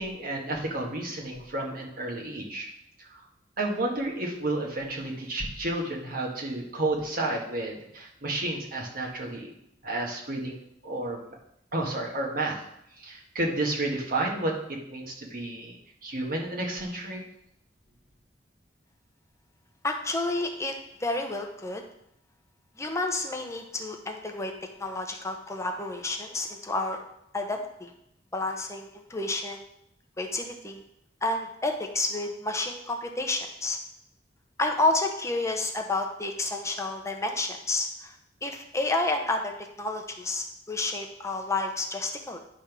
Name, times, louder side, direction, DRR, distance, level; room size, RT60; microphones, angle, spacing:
voice 1, 0.0-2.7 3.0-3.2 3.6-9.5 9.8-10.6 10.8-11.3 11.7-12.6 13.0-15.7 16.0-17.2, right 2 dB, 55° right, -1 dB, 1.7 m, -31 dB
voice 2, 19.8-20.7 21.0-21.8 22.8-24.5 24.8-27.0 27.3-27.9 28.3-29.6 30.2-30.8 31.2-33.8 34.6-38.1 38.4-42.4, left 2 dB, 15° left, 4 dB, 0.7 m, -30 dB
10.0 x 3.5 x 6.0 m, 0.76 s
head